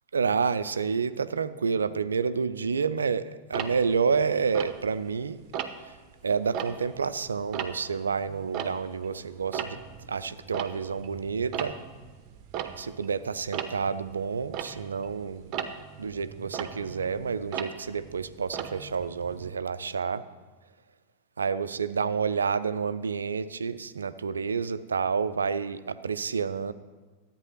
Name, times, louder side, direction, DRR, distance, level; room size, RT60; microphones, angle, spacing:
voice 1, 0.1-5.4 6.2-9.8 10.1-11.8 12.8-15.5 16.0-20.2 21.4-26.7, right 5 dB, 70° right, 14 dB, 0.5 m, -29 dB
Tick-tock, 3.5-5.2 5.5-6.0 6.4-9.1 9.4-19.5, right 8 dB, 35° right, 0.9 m, -37 dB
13.0 x 9.0 x 5.6 m, 1.4 s
figure-of-eight pair, 90°, 0 cm